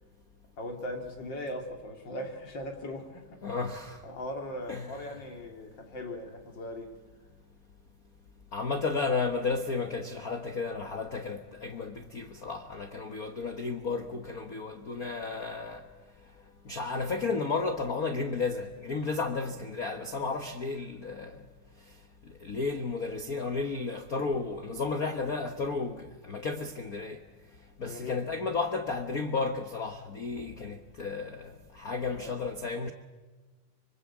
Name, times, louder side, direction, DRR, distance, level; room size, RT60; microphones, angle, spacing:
voice 1, 0.6-3.4 4.0-6.9 27.8-28.2 32.1-32.4, left 1 dB, 35° left, 3.5 m, -39 dB
voice 2, 3.4-4.0 4.7-5.0 8.5-15.9 16.6-21.5 22.4-27.2 27.8-32.9, left 4 dB, 70° left, 0.8 m, -33 dB
25.0 x 25.0 x 7.4 m
omnidirectional pair, 3.6 m